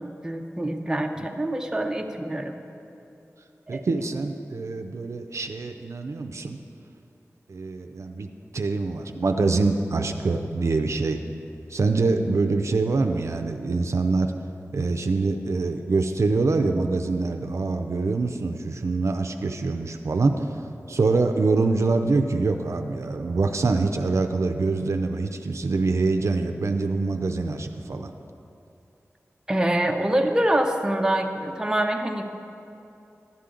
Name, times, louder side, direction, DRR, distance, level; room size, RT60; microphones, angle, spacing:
voice 1, 0.0-2.6 3.7-3.8 29.5-32.2, right 1 dB, 15° right, 3 dB, 0.7 m, -25 dB
voice 2, 3.7-6.6 7.5-8.3 8.5-11.2 11.7-14.3 14.7-28.1, right 3 dB, 70° right, 6 dB, 0.5 m, -25 dB
12.0 x 8.4 x 3.8 m, 2.7 s
wide cardioid pair, 80°, 5 cm